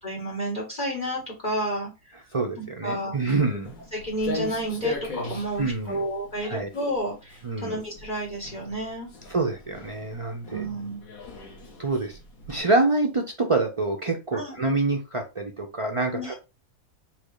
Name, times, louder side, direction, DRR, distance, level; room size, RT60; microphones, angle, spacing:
voice 1, 0.0-2.2 2.6-3.1 3.9-9.1 10.5-11.0 14.3-14.6 16.1-16.3, right 1 dB, 30° left, -2 dB, 1.2 m, -31 dB
voice 2, 2.3-3.7 5.6-6.1 6.4-6.7 7.4-7.8 9.3-10.6 11.8-12.2 12.5-16.3, right 3 dB, 50° right, 1 dB, 0.3 m, -26 dB
Walk footsteps, 3.1-12.6, left 4 dB, 75° left, 1.6 m, -39 dB
4.3 x 2.3 x 4.8 m, 0.28 s
omnidirectional pair, 1.5 m